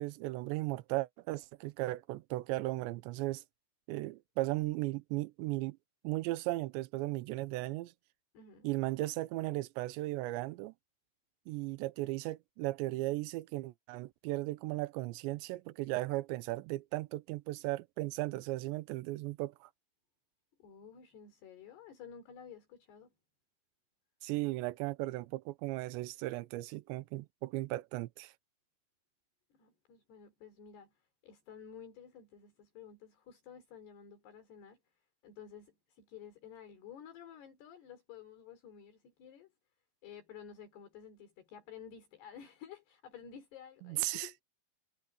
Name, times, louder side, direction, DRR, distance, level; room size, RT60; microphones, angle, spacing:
voice 1, 0.0-3.4 3.9-5.8 6.0-7.9 8.6-10.7 11.5-19.7 24.2-28.3 43.8-44.3, right 19 dB, 85° right, 2.9 m, -36 dB
voice 2, 8.3-8.7 20.6-23.1 29.5-39.5 40.0-44.4, left 8 dB, 65° left, 5.6 m, -52 dB
omnidirectional pair, 5.3 m